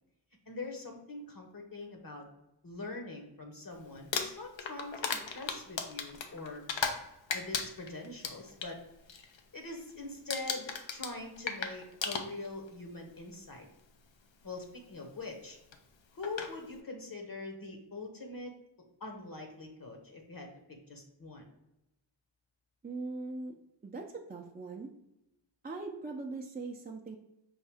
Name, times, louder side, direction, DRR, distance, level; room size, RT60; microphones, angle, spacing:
voice 1, 0.5-2.3 2.6-6.6 7.3-8.8 9.5-13.7 14.4-15.6 16.1-18.5 19.0-21.5, left 3 dB, 50° left, 3 dB, 0.9 m, -43 dB
Crumpling crinkling, 4.0-7.0 7.3-8.7 9.1-9.4 9.7-10.0 10.3-12.7 13.6-13.7 15.7-15.8 16.2-16.5, left 5 dB, 80° left, 0.6 m, -36 dB
voice 2, 22.8-23.5 23.8-24.9 25.6-27.2, right 3 dB, 20° right, 1 dB, 0.4 m, -40 dB
5.5 x 2.6 x 3.4 m, 0.89 s
wide cardioid pair, 65°, 45 cm